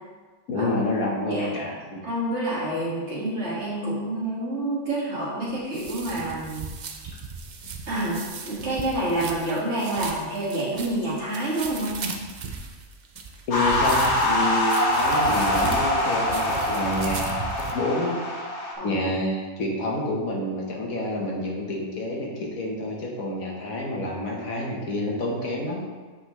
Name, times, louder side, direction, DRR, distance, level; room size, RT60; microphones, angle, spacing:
voice 1, 0.5-2.0 13.5-18.2 18.8-25.8, left 1 dB, 75° left, -2 dB, 1.5 m, -28 dB
voice 2, 2.0-6.7 7.9-8.2 8.5-12.1 18.8-19.0, right 1 dB, 50° right, -8 dB, 2.1 m, -28 dB
sound 1, 5.5-17.7, right 4 dB, 80° right, 0.4 m, -37 dB
sound 2, 13.5-18.7, left 1 dB, 60° left, 1.1 m, -24 dB
8.2 x 4.0 x 3.1 m, 1.4 s
omnidirectional pair, 1.5 m